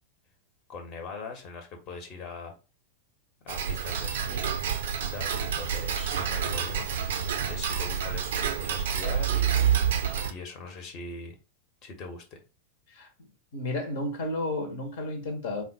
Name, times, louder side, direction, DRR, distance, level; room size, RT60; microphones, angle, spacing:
voice 1, 0.7-2.5 3.4-4.5 5.0-6.8 7.5-9.8 10.3-11.4 11.8-12.4, left 4 dB, 35° left, 1.1 m, -41 dB
Tick-tock, 3.5-10.3, right 7 dB, 60° right, 0.6 m, -28 dB
voice 2, 12.9-15.6, left 2 dB, 55° left, 1.1 m, -33 dB
4.0 x 2.4 x 4.2 m
figure-of-eight pair, 90°, 0 cm